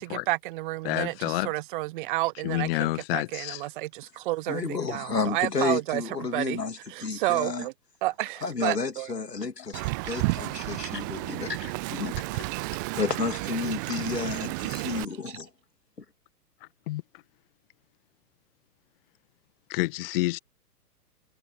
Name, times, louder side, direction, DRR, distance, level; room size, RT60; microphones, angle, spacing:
voice 1, 0.0-6.6 6.9-7.7 8.0-9.1 15.3-15.4, right 19 dB, 30° right, 1.1 m, -31 dB
voice 2, 0.8-1.5 2.4-3.7 12.2-12.5 16.6-17.0 19.7-20.4, left 20 dB, 35° left, 1.9 m, -29 dB
voice 3, 4.5-7.6 8.4-12.2 12.9-15.5, left 4 dB, 80° left, 3.0 m, -31 dB
Wind, 9.7-15.0, right 26 dB, 15° right, 0.5 m, -32 dB
figure-of-eight pair, 115°, 48 cm